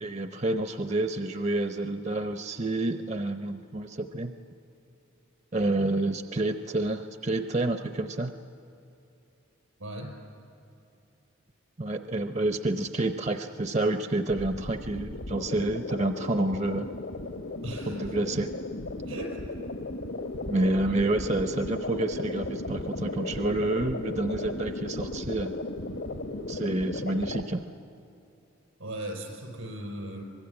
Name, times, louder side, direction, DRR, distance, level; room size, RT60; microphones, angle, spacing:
voice 1, 0.0-4.3 5.5-8.3 11.8-16.9 17.9-18.5 20.5-25.5 26.5-27.6, right 2 dB, 35° right, 8 dB, 0.6 m, -28 dB
voice 2, 9.8-10.1 17.6-18.0 19.1-19.4 21.3-21.6 28.8-30.2, right 1 dB, 85° right, 3 dB, 5.2 m, -37 dB
sound 1, 14.3-27.4, left 2 dB, 70° left, 1.3 m, -36 dB
24.5 x 21.0 x 9.6 m, 2.7 s
head